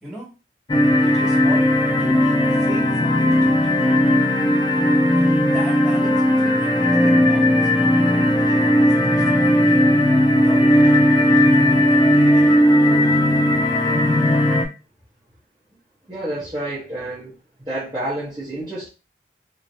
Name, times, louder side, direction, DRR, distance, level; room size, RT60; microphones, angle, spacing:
sound 1, 0.7-14.6, left 1 dB, 25° left, 0.4 m, -16 dB
voice 1, 1.0-1.7 2.0-3.8 5.2-9.9 10.3-10.7 11.4-13.2, right 1 dB, 5° right, -8 dB, 1.9 m, -37 dB
voice 2, 16.1-17.4 17.7-18.9, right 1 dB, 25° right, -11 dB, 1.0 m, -29 dB
3.1 x 2.9 x 2.7 m, 0.31 s
head